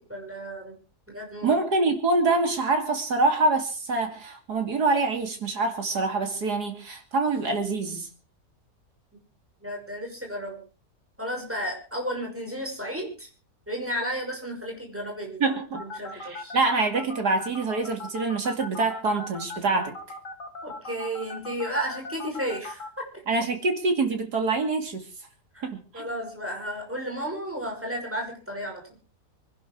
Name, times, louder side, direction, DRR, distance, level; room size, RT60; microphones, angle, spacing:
voice 1, 0.1-0.8 1.1-1.6 9.6-10.6 11.2-13.3 13.7-16.5 20.6-23.2 25.5-29.0, equal, 5° right, 0 dB, 6.0 m, -33 dB
voice 2, 1.4-8.1 15.4-15.8 16.1-19.9 23.3-25.0 25.6-26.1, right 3 dB, 75° right, 5 dB, 3.3 m, -25 dB
sound 1, 15.7-22.9, left 2 dB, 50° left, 2.2 m, -38 dB
25.0 x 11.0 x 4.7 m, 0.37 s
omnidirectional pair, 1.7 m